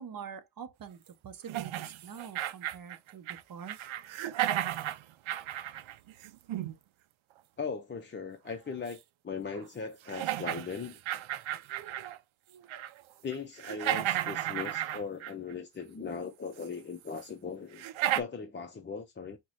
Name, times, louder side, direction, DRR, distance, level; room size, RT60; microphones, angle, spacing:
voice 1, 0.0-3.8, right 7 dB, 45° right, 0.8 m, -45 dB
sound 1, 1.5-3.4 3.7-6.8 8.9-9.0 9.5-9.6 10.1-12.2 12.5-13.0 13.3-15.5 16.6-16.7 17.2-17.3 17.8-18.2, right 12 dB, 85° right, 0.6 m, -34 dB
voice 2, 7.6-11.0 13.2-17.8 18.2-19.4, left 5 dB, 25° left, 0.4 m, -39 dB
4.7 x 2.2 x 3.9 m
wide cardioid pair, 150°, 46 cm